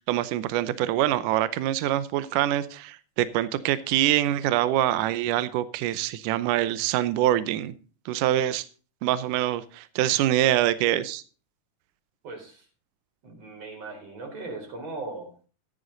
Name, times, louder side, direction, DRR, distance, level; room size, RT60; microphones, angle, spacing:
voice 1, 0.0-7.7 8.1-8.6 9.0-11.2, right 13 dB, 80° right, 15 dB, 2.2 m, -25 dB
voice 2, 12.2-12.7 13.2-15.3, right 3 dB, 50° right, 3 dB, 5.2 m, -38 dB
14.0 x 10.5 x 3.9 m, 0.37 s
omnidirectional pair, 3.8 m